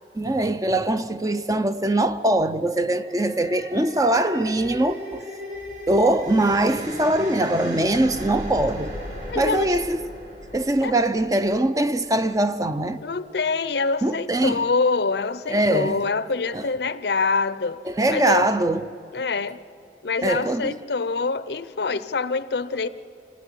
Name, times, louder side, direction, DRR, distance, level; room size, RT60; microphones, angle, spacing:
voice 1, 0.1-5.2 5.9-8.9 9.3-10.0 10.5-13.0 14.0-14.6 15.5-16.0 16.5-16.7 17.8-18.9 20.2-20.8, right 1 dB, 20° right, 0.5 m, -22 dB
sound 1, 2.7-12.0, equal, 45° right, 6.5 m, -37 dB
voice 2, 9.3-9.7 10.8-11.0 13.0-17.8 18.1-18.5 19.1-19.6 20.0-22.9, left 4 dB, 65° left, 0.6 m, -25 dB
27.0 x 15.0 x 10.0 m
head